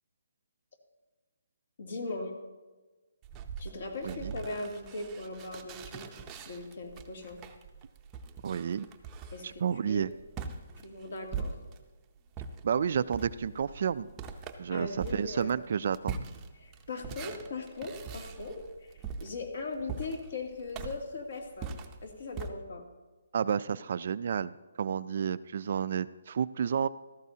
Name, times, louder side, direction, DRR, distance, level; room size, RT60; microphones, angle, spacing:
voice 1, 1.8-2.3 3.6-6.1 6.4-7.4 9.3-10.2 10.8-11.6 14.7-15.6 16.6-22.8, left 3 dB, 55° left, 2 dB, 2.5 m, -39 dB
sound 1, 3.2-12.0 12.3-22.5, right 5 dB, 10° right, 0.7 m, -42 dB
voice 2, 8.4-8.9 9.4-10.1 12.6-14.1 14.6-16.2 23.3-24.5 24.8-26.9, right 7 dB, 45° right, 15 dB, 0.3 m, -30 dB
16.0 x 14.0 x 2.8 m, 1.2 s
hypercardioid pair, 170°, 0 cm